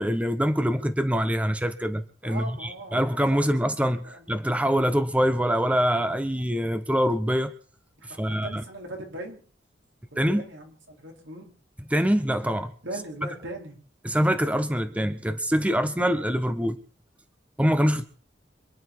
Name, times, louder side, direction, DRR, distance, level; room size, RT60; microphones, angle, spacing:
voice 1, 0.0-7.5 8.1-8.6 10.2-10.4 11.9-12.7 14.0-16.8 17.6-18.0, equal, 10° right, 10 dB, 0.8 m, -24 dB
voice 2, 2.2-3.6 4.0-4.3 8.0-9.4 10.1-11.5 12.8-13.8, right 1 dB, 75° right, 1 dB, 4.5 m, -39 dB
26.5 x 10.5 x 4.5 m, 0.42 s
head